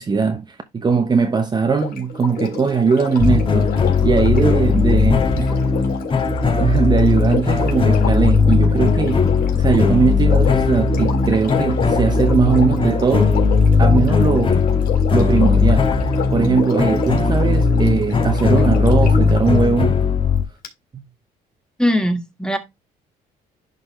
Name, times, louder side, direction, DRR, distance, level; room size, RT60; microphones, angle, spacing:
voice 1, 0.0-3.7 4.0-5.5 6.6-9.2 9.5-13.4 13.8-14.6 15.1-20.0 20.9-21.0, right 5 dB, 25° right, 0.9 m, -19 dB
Sink (filling or washing), 1.7-19.5 20.6-20.7, left 3 dB, 60° left, 3.5 m, -29 dB
sound 1, 3.2-20.4, left 5 dB, 30° left, 1.8 m, -17 dB
voice 2, 21.8-22.6, equal, 5° left, 1.6 m, -20 dB
11.0 x 4.0 x 3.1 m
cardioid pair, 110°, 17 cm